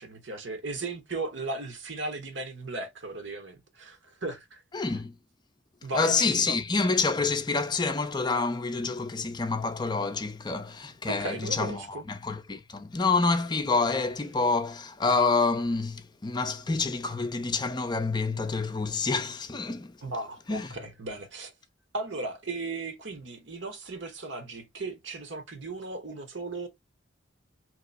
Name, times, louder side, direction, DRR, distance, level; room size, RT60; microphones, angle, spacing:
voice 1, 0.0-4.6 5.8-6.6 11.1-12.0 20.0-21.5 21.9-26.7, right 2 dB, 65° right, 1.1 m, -36 dB
voice 2, 4.7-5.2 5.9-19.9 20.5-20.8, left 4 dB, 20° left, 0.5 m, -27 dB
3.1 x 3.0 x 3.9 m
head